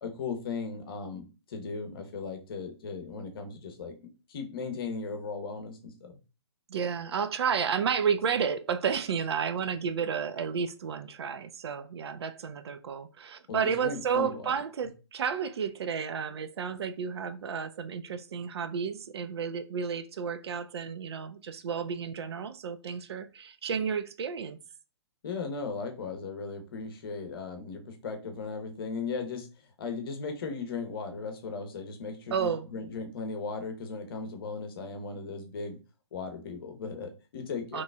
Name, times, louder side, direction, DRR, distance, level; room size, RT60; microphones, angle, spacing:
voice 1, 0.0-4.0 4.3-6.2 13.5-14.4 25.2-29.5 29.8-35.8 36.1-37.8, left 4 dB, 50° left, 0.8 m, -37 dB
voice 2, 6.7-24.6 32.3-32.7 37.7-37.8, right 6 dB, 65° right, 0.4 m, -31 dB
3.9 x 3.1 x 2.2 m
figure-of-eight pair, 125°, 15 cm